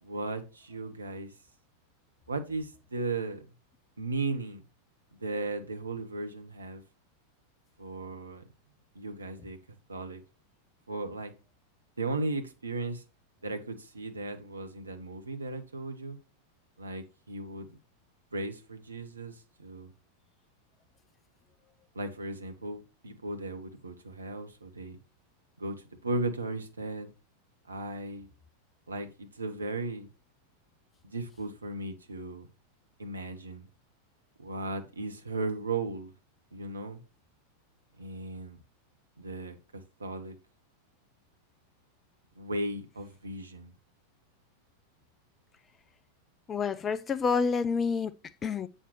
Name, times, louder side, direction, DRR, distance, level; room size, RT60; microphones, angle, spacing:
voice 1, 0.0-1.3 2.3-3.4 4.0-4.6 5.2-6.8 7.8-8.5 8.9-9.6 9.9-10.2 10.9-11.3 12.0-13.0 13.4-16.2 16.8-17.8 18.3-19.9 21.9-25.0 25.6-25.8 26.0-27.1 27.7-28.3 28.9-30.1 31.0-32.5 33.0-33.6 34.4-36.1 36.5-37.0 38.0-38.6 39.2-40.4 42.4-43.7, right 2 dB, 75° right, 1.0 m, -36 dB
voice 2, 46.5-48.7, left 5 dB, 20° left, 0.4 m, -29 dB
7.4 x 6.6 x 3.0 m
figure-of-eight pair, 90°, 0 cm